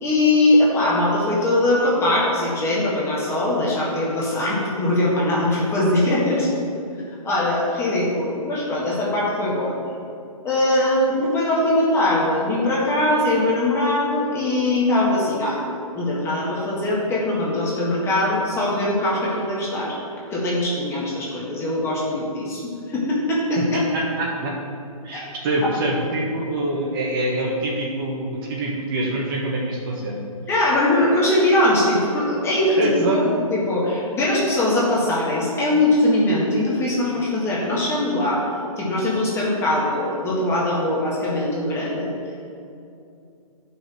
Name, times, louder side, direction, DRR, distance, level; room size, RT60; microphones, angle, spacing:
voice 1, 0.0-6.5 7.2-9.7 10.4-15.6 15.9-20.0 20.3-23.6 25.1-25.2 30.5-33.2 33.5-38.4 38.8-42.1, left 1 dB, 15° left, -5 dB, 1.6 m, -21 dB
voice 2, 23.6-24.5 25.0-30.2 32.7-33.2, right 1 dB, 35° right, -2 dB, 1.5 m, -25 dB
11.0 x 5.8 x 4.5 m, 2.6 s
hypercardioid pair, 140°, 19 cm